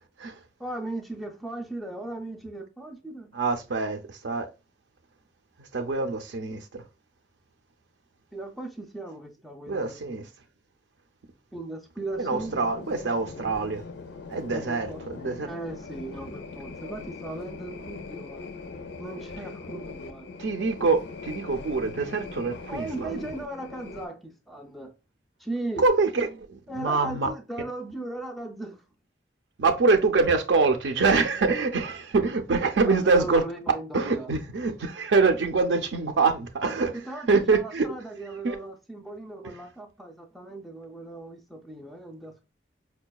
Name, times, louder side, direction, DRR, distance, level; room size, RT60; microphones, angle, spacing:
voice 1, 0.6-3.3 8.3-10.3 11.5-12.8 14.5-15.0 15.4-18.5 19.0-20.3 22.7-24.9 25.4-25.9 26.7-28.8 32.9-34.3 36.9-42.5, right 2 dB, ahead, 0.3 m, -37 dB
voice 2, 3.3-4.5 5.6-6.8 9.7-10.2 12.2-13.8 14.3-15.5 20.4-23.3 25.8-27.3 29.6-33.4 33.9-37.0 37.3-37.9 38.4-38.6, right 4 dB, 75° right, 0.5 m, -25 dB
sound 1, 12.0-24.1, left 4 dB, 70° left, 0.4 m, -41 dB
4.6 x 2.2 x 2.2 m
head